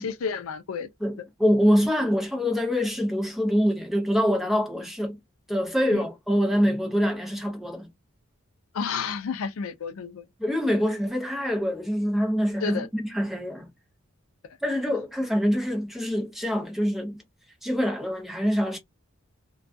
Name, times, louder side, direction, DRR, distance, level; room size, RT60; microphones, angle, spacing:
voice 1, 0.0-0.9 5.9-6.0 8.7-10.2 12.6-12.9, left 6 dB, 85° left, 0.4 m, -31 dB
voice 2, 1.0-5.2 5.5-7.9 10.4-13.7 14.6-17.2 17.6-18.8, equal, ahead, 0.6 m, -25 dB
2.3 x 2.2 x 2.5 m
head